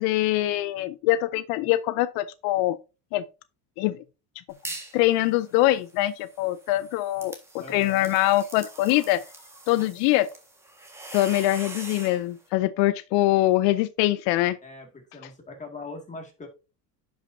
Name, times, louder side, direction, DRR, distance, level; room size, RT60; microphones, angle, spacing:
voice 1, 0.0-2.8 3.1-3.2 3.8-4.0 4.9-9.2 9.7-10.3 11.1-14.6, left 16 dB, 75° left, 0.5 m, -23 dB
sound 1, 4.5-5.0 5.4-12.2, right 2 dB, 5° right, 1.5 m, -42 dB
voice 2, 7.6-8.1 14.6-16.5, left 2 dB, 15° left, 2.0 m, -41 dB
10.5 x 5.5 x 2.6 m
cardioid pair, 145°, 42 cm